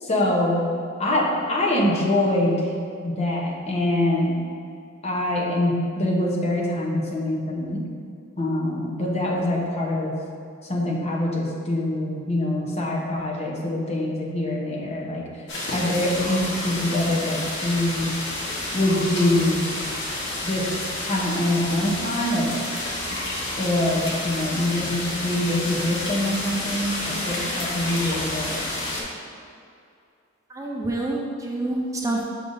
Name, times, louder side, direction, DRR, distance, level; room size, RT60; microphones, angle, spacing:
voice 1, 0.0-0.6 1.0-2.7 3.0-4.5 5.0-7.8 8.4-10.1 10.7-15.3 15.7-18.1 18.7-19.7 20.4-22.5 23.6-28.6, left 1 dB, 35° left, -3 dB, 0.9 m, -24 dB
sound 1, 15.5-29.0, left 1 dB, 65° left, 1.2 m, -30 dB
voice 2, 30.5-32.3, right 2 dB, 15° right, -2 dB, 0.4 m, -27 dB
6.6 x 5.3 x 2.7 m, 2.4 s
head